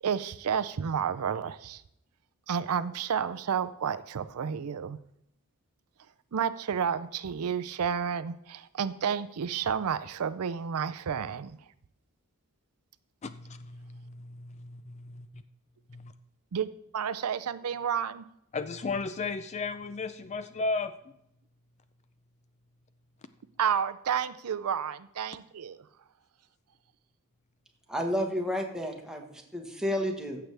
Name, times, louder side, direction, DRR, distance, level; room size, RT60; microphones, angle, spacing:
voice 1, 0.0-1.8 2.5-5.0 6.3-11.6 16.5-18.3 23.6-25.8, right 7 dB, 75° right, 13 dB, 0.5 m, -31 dB
voice 2, 13.2-15.3 15.9-16.1 18.5-20.9, left 3 dB, 30° left, 12 dB, 0.4 m, -35 dB
voice 3, 27.9-30.4, equal, 5° right, 2 dB, 1.3 m, -31 dB
15.0 x 6.9 x 3.4 m, 0.77 s
head